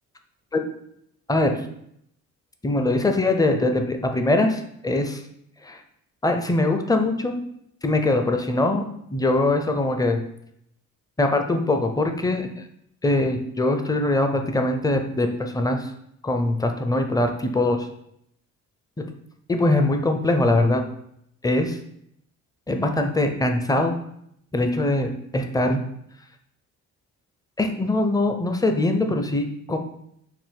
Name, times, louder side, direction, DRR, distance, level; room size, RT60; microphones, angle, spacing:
voice 1, 1.3-1.6 2.6-5.2 5.6-5.8 6.2-7.4 7.8-10.2 11.2-12.5 13.0-15.9 16.2-17.9 19.0-19.1 19.5-20.8 21.4-21.8 22.7-23.9 24.5-25.8 27.6-29.8, left 2 dB, 10° left, 5 dB, 0.5 m, -22 dB
4.4 x 2.1 x 3.5 m, 0.73 s
supercardioid pair, 50°, 37 cm